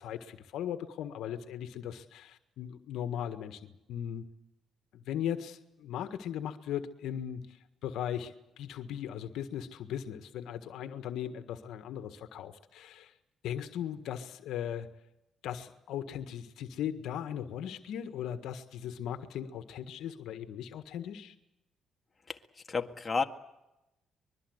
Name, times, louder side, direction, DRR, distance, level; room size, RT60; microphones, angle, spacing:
voice 1, 0.0-4.3 4.9-13.1 13.4-14.9 15.4-21.3, left 9 dB, 85° left, 9 dB, 1.6 m, -38 dB
voice 2, 22.7-23.2, left 4 dB, 30° left, 4 dB, 1.9 m, -31 dB
24.5 x 22.0 x 8.0 m, 0.92 s
cardioid pair, 90°, 0 cm